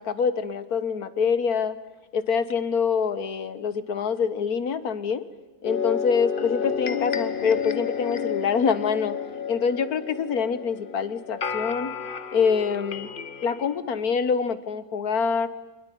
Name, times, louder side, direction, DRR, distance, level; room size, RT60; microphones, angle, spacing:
voice 1, 0.0-1.8 2.1-5.2 5.6-9.2 9.5-11.9 12.3-13.1 13.4-15.5, left 6 dB, 65° left, 13 dB, 1.7 m, -25 dB
sound 1, 5.6-13.8, left 6 dB, 35° left, 1.0 m, -31 dB
25.5 x 21.5 x 9.3 m, 1.1 s
omnidirectional pair, 1.7 m